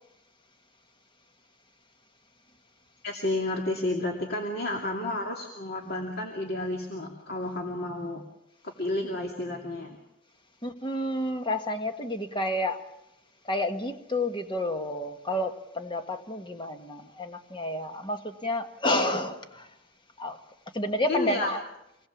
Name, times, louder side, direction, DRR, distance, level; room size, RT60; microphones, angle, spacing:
voice 1, 3.0-8.2 8.6-10.0 21.1-21.5, left 2 dB, 50° left, 1 dB, 2.5 m, -31 dB
voice 2, 10.6-12.9 13.4-19.7 20.2-20.4 20.7-21.6, left 1 dB, 25° left, 6 dB, 1.6 m, -30 dB
26.5 x 19.5 x 7.3 m, 0.87 s
head